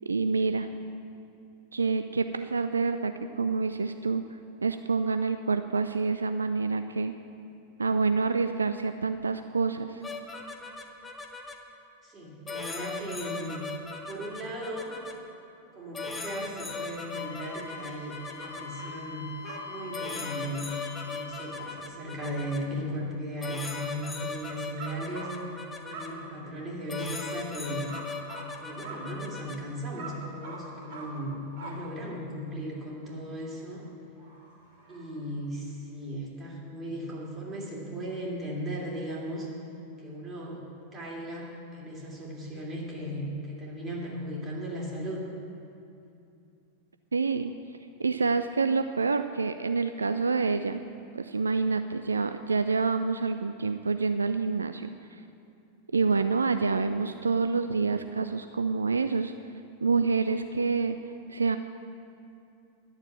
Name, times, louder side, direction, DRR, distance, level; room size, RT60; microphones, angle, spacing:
voice 1, 0.1-0.7 1.7-4.2 4.6-7.1 7.8-10.0 47.1-47.5 48.0-50.8 51.1-54.9 55.9-59.3 59.8-61.0 61.3-61.6, right 4 dB, 75° right, 9 dB, 0.3 m, -27 dB
sound 1, 10.0-11.5 12.5-15.1 15.9-18.6 19.4-19.6 19.9-22.6 23.4-26.1 26.9-29.6, left 3 dB, 15° left, 1.0 m, -38 dB
voice 2, 12.0-13.7 14.0-14.9 15.7-19.3 19.7-20.6 21.0-25.3 25.9-27.9 28.6-33.8 34.9-39.5 40.0-40.6 40.9-45.3, equal, 20° right, -3 dB, 2.9 m, -37 dB
Wind instrument woodwind instrument, 17.1-21.8, left 6 dB, 65° left, 1.7 m, -44 dB
sound 2, 18.4-19.2 19.4-20.0 24.8-25.6 25.9-26.6 27.9-29.6 30.0-32.2 32.6-32.7 33.5-33.7 34.2-35.2 35.7-35.8, right 2 dB, 50° right, 2.5 m, -44 dB
11.0 x 7.2 x 8.9 m, 2.6 s
figure-of-eight pair, 90°, 0 cm